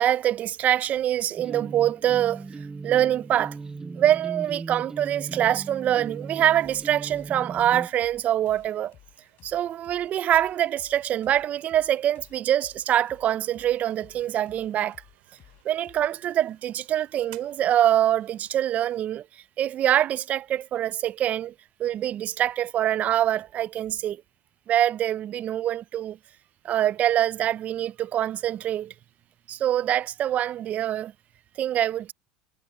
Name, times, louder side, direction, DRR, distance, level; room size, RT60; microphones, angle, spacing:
voice 1, 0.0-2.4 2.8-3.6 4.0-8.9 9.4-15.0 15.7-19.2 19.6-21.5 21.8-24.2 24.7-26.2 26.6-28.9 29.5-31.1 31.6-32.1, right 11 dB, 35° right, 0.3 m, -24 dB
sound 1, 1.4-7.9, right 4 dB, 15° right, 0.7 m, -38 dB
sound 2, 5.0-19.1, right 21 dB, 80° right, 6.0 m, -60 dB
sound 3, 6.6-17.7, left 13 dB, 45° left, 4.5 m, -57 dB
supercardioid pair, 135°, 5 cm